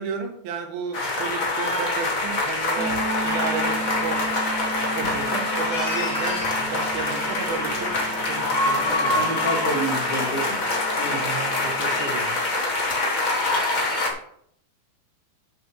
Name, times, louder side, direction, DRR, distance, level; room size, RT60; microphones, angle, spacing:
voice 1, 0.0-4.3 4.9-9.2 11.1-12.3, right 5 dB, 85° right, 4 dB, 3.1 m, -33 dB
sound 1, 0.9-14.1, left 2 dB, 85° left, 0.7 m, -25 dB
sound 2, 2.8-12.5, right 3 dB, 70° right, 2.1 m, -37 dB
sound 3, 3.2-10.6, right 3 dB, 50° right, 1.5 m, -39 dB
voice 2, 8.8-10.6 11.0-11.2, right 2 dB, 25° left, -7 dB, 2.5 m, -29 dB
12.0 x 6.5 x 3.2 m, 0.69 s
omnidirectional pair, 4.1 m